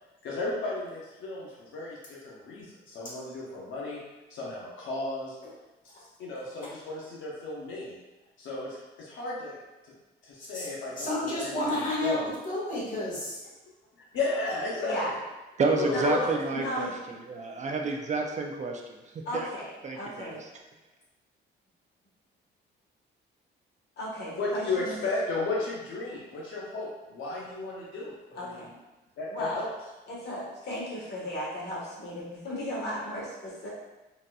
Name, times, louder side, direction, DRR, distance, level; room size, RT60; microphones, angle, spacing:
voice 1, 0.2-4.0 4.3-5.3 5.8-5.9 6.2-8.0 8.4-9.6 9.8-9.9 10.2-12.3 14.1-15.2 15.8-16.4 24.4-28.1 28.4-28.7 29.2-29.7, left 2 dB, 80° left, -5 dB, 0.8 m, -34 dB
voice 2, 10.4-10.7 11.0-13.4, left 1 dB, 40° left, -6 dB, 1.5 m, -31 dB
voice 3, 14.8-15.2 15.9-17.0 19.2-20.4 24.0-25.0 28.3-28.7 29.3-29.6 30.1-33.7, equal, 60° left, -5 dB, 1.3 m, -35 dB
voice 4, 15.6-19.5 19.8-20.4, right 3 dB, 35° right, 2 dB, 0.4 m, -30 dB
4.0 x 2.5 x 2.3 m, 1.1 s
cardioid pair, 90°, 20 cm